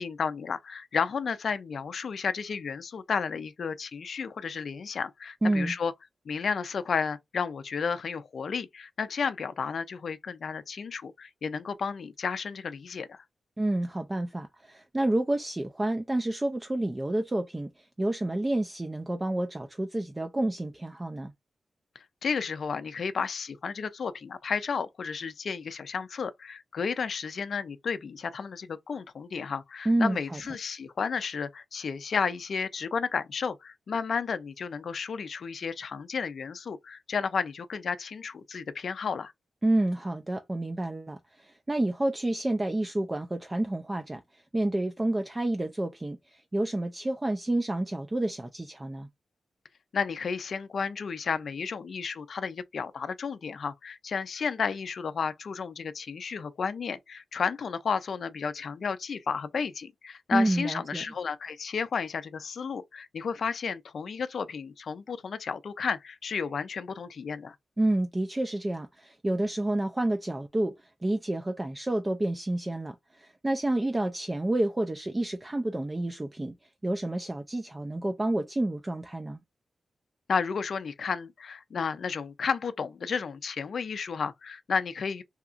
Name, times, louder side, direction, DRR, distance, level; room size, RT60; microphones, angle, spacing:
voice 1, 0.0-5.9 6.3-13.2 22.0-39.3 49.9-67.6 80.3-85.2, left 5 dB, 65° left, 0.4 m, -32 dB
voice 2, 5.4-5.7 13.6-21.3 29.9-30.4 39.6-49.1 60.3-61.0 67.8-76.5 76.8-79.4, right 1 dB, 20° right, 0.3 m, -29 dB
2.8 x 2.4 x 2.4 m
wide cardioid pair, 110°, 0 cm